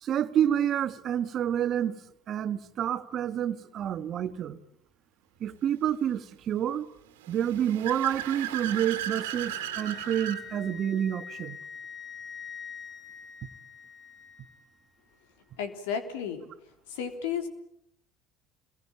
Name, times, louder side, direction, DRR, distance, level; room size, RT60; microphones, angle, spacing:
voice 1, 0.0-2.0 2.3-4.6 5.4-6.9 7.3-11.6, right 10 dB, 50° right, 10 dB, 1.7 m, -28 dB
Car / Accelerating revving vroom, 7.2-10.4, right 10 dB, 80° right, 2.4 m, -35 dB
Wind instrument woodwind instrument, 8.8-14.8, left 7 dB, 20° left, 4.4 m, -45 dB
voice 2, 15.6-16.4 16.9-17.5, left 7 dB, 75° left, 7 dB, 3.5 m, -33 dB
28.5 x 22.0 x 8.8 m, 0.79 s
hypercardioid pair, 70°, 0 cm